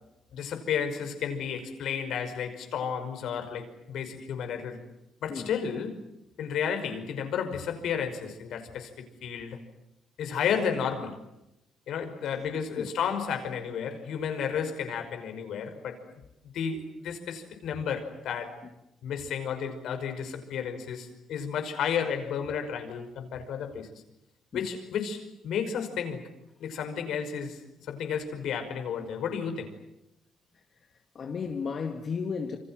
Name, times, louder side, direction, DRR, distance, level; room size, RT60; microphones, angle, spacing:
voice 1, 0.3-4.8 5.2-6.0 6.4-9.6 10.2-11.2 11.9-16.0 16.5-18.6 19.0-24.0 24.5-26.2 26.6-27.6 27.9-29.7, left 7 dB, 75° left, 5.4 m, -32 dB
voice 2, 31.1-32.6, left 5 dB, 50° left, 2.2 m, -33 dB
27.5 x 26.0 x 7.7 m
cardioid pair, 90°, 0 cm